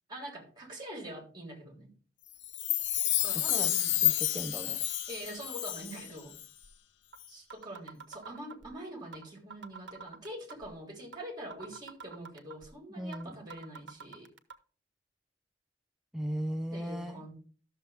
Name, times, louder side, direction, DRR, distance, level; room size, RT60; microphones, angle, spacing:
voice 1, 0.1-1.9 3.2-4.0 5.1-6.4 7.3-14.3 16.7-17.3, right 1 dB, 25° right, 0 dB, 3.5 m, -44 dB
Chime, 2.4-6.1 6.3-6.4, left 12 dB, 85° left, 0.7 m, -30 dB
voice 2, 4.0-4.8 13.0-13.4 16.1-17.2, equal, ahead, 6 dB, 0.5 m, -37 dB
sound 1, 6.6-6.7 7.1-7.2 7.5-8.7 9.1-9.2 9.5-10.7 11.1-11.2 11.5-12.7 13.1-13.2 13.5-14.5, right 5 dB, 85° right, 1.0 m, -46 dB
13.0 x 6.8 x 3.4 m, 0.39 s
head